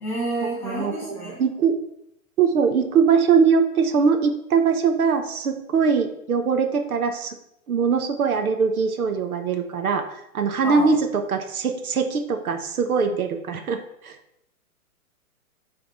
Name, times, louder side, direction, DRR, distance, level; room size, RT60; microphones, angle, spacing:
voice 1, 0.0-1.4 10.6-10.9, right 1 dB, 5° left, -6 dB, 1.7 m, -29 dB
voice 2, 0.6-1.7 2.4-7.4 7.7-14.2, right 5 dB, 75° right, 7 dB, 1.0 m, -22 dB
9.5 x 3.6 x 4.6 m, 0.78 s
hypercardioid pair, 175°, 44 cm